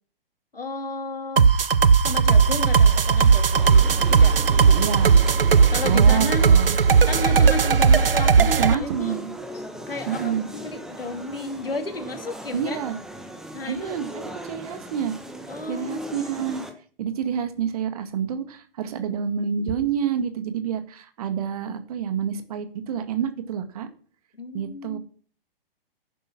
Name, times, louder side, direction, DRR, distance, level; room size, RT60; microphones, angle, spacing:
voice 1, 0.5-1.5 2.0-3.7 4.1-4.8 5.7-6.5 7.1-9.2 9.5-12.8 13.5-14.0 15.5-16.3 24.4-25.0, left 3 dB, 75° left, 5 dB, 2.9 m, -33 dB
sound 1, 1.4-8.7, right 6 dB, 70° right, 0.8 m, -17 dB
sound 2, 3.6-16.7, right 1 dB, ahead, 1.5 m, -39 dB
voice 2, 4.7-5.2 5.8-6.8 8.4-9.3 10.1-10.5 12.5-13.0 13.7-15.2 15.7-16.6 17.0-23.9 24.5-25.0, right 8 dB, 40° right, 9 dB, 1.9 m, -28 dB
11.0 x 10.0 x 5.9 m, 0.43 s
figure-of-eight pair, 120°, 29 cm